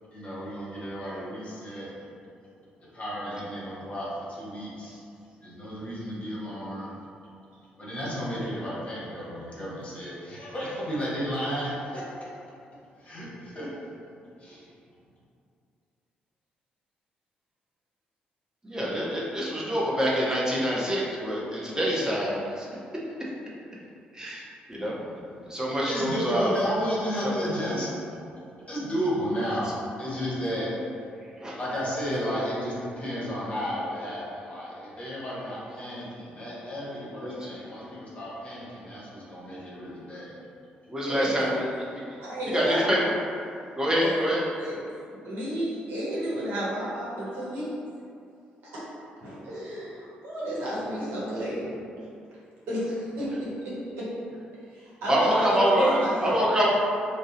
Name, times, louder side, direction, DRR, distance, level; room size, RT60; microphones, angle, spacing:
voice 1, 0.1-1.9 2.9-4.9 5.4-6.9 7.8-12.3 13.0-13.9 14.4-14.7 25.8-27.9 28.7-30.7 31.6-40.4, equal, 30° left, -7 dB, 1.0 m, -33 dB
voice 2, 18.6-22.7 24.1-25.2 25.5-26.6 27.2-27.3 31.4-31.6 37.2-37.5 40.9-41.6 42.5-43.1 43.8-44.4 55.1-56.7, equal, 15° right, -6 dB, 0.8 m, -26 dB
voice 3, 42.2-42.8 44.0-44.1 44.6-44.7 45.1-47.7 48.7-48.8 49.2-51.7 52.7-54.1 54.7-56.4, equal, 60° right, -8 dB, 0.9 m, -32 dB
2.6 x 2.0 x 3.8 m, 2.5 s
figure-of-eight pair, 40°, 5 cm